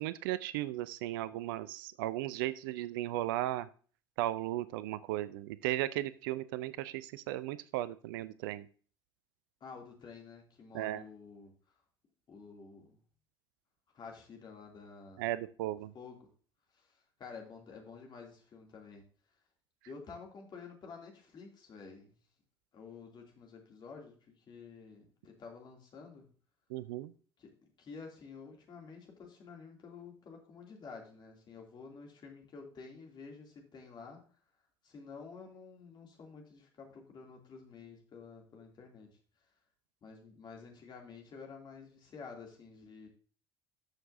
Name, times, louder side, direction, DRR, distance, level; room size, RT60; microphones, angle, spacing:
voice 1, 0.0-3.7 4.2-8.7 10.7-11.0 15.2-15.9 26.7-27.1, right 15 dB, 60° right, 16 dB, 0.4 m, -36 dB
voice 2, 9.6-11.5 12.3-13.0 13.9-15.3 15.9-16.2 16.8-16.9 17.2-19.0 19.9-22.1 22.7-26.3 27.4-27.5 27.8-34.2 34.8-39.1 40.0-43.1, left 5 dB, 35° left, 1 dB, 2.7 m, -50 dB
13.0 x 6.5 x 2.7 m, 0.41 s
figure-of-eight pair, 60°, 13 cm